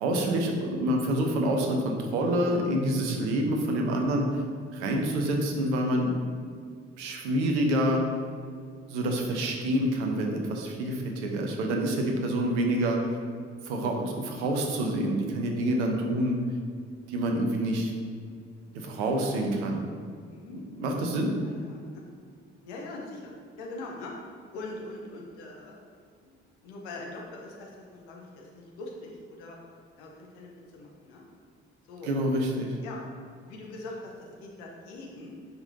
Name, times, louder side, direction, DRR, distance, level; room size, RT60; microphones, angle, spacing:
voice 1, 0.0-4.4 4.7-6.2 7.0-8.0 8.9-13.0 13.6-16.4 17.1-17.9 18.7-19.8 20.5-21.3 32.1-32.7, right 1 dB, 75° right, 2 dB, 0.9 m, -27 dB
voice 2, 20.3-22.0 22.6-24.1 24.5-25.8 26.2-29.6 30.0-31.2 31.9-32.4 32.8-33.0 33.4-35.4, left 2 dB, 75° left, -1 dB, 1.1 m, -43 dB
8.9 x 5.3 x 2.8 m, 2.1 s
figure-of-eight pair, 40°, 35 cm